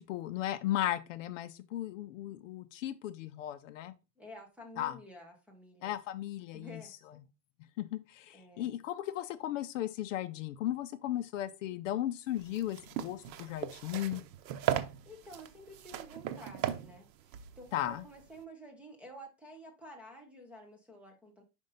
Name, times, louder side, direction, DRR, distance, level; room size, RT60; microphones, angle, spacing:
voice 1, 0.0-3.9 4.8-5.0 5.8-6.8 7.8-14.2 17.7-18.0, left 13 dB, 50° left, 0.5 m, -36 dB
voice 2, 4.2-6.0 6.5-7.2 8.3-8.8 15.0-21.4, equal, 5° right, 0.6 m, -51 dB
sound 1, 12.3-18.4, right 11 dB, 90° right, 0.9 m, -38 dB
5.3 x 5.3 x 3.9 m
supercardioid pair, 165°, 49 cm